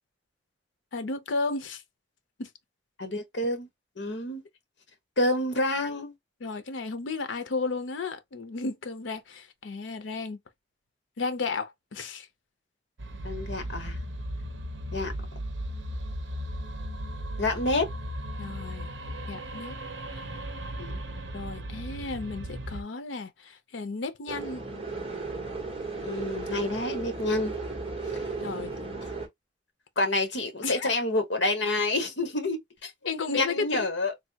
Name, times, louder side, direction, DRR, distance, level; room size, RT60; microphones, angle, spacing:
voice 1, 0.9-1.8 2.4-2.5 6.4-10.4 11.2-12.3 18.4-18.9 19.3-19.8 20.1-20.2 21.3-24.7 28.4-28.7 30.6-30.9 33.1-33.9, left 3 dB, 85° left, 0.6 m, -33 dB
voice 2, 3.0-3.7 4.0-4.4 5.2-6.1 13.2-14.0 14.9-15.1 17.4-17.9 20.8-21.0 26.0-27.5 30.0-32.9 33.3-34.1, left 2 dB, 70° left, 1.0 m, -28 dB
sound 1, 13.0-22.8, right 1 dB, 75° right, 0.7 m, -36 dB
sound 2, 24.3-29.3, right 3 dB, 30° right, 1.1 m, -35 dB
3.3 x 2.2 x 2.7 m
head